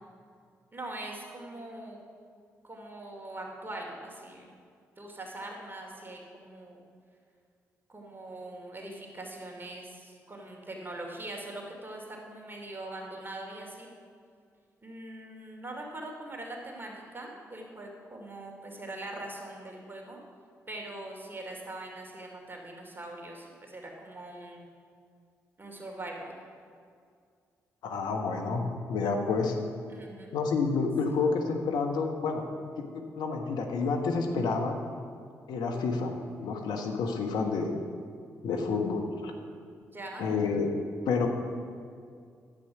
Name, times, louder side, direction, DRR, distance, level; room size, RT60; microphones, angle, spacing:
voice 1, 0.7-2.0 2.6-4.5 5.0-6.8 7.9-13.9 14.8-20.2 20.7-24.6 25.6-26.4 29.9-30.4 39.9-40.3, right 1 dB, 30° right, 0 dB, 2.7 m, -42 dB
voice 2, 27.8-29.5 30.3-32.4 32.9-34.8 35.5-37.7 38.4-39.3 40.2-40.7 41.0-41.3, left 4 dB, 75° left, 3 dB, 1.2 m, -29 dB
10.5 x 8.0 x 5.9 m, 2.3 s
hypercardioid pair, 45°, 7 cm